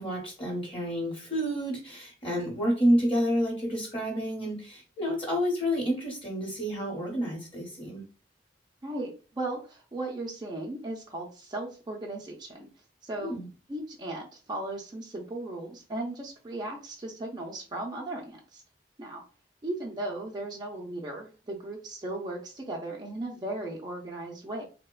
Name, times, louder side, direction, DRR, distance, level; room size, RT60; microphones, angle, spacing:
voice 1, 0.0-8.0 13.2-13.5, equal, 30° left, 0 dB, 0.9 m, -29 dB
voice 2, 8.8-12.7 13.0-13.4 13.7-18.6 19.0-19.2 19.6-24.6, right 2 dB, 25° right, -2 dB, 0.4 m, -36 dB
3.1 x 2.1 x 2.2 m, 0.34 s
head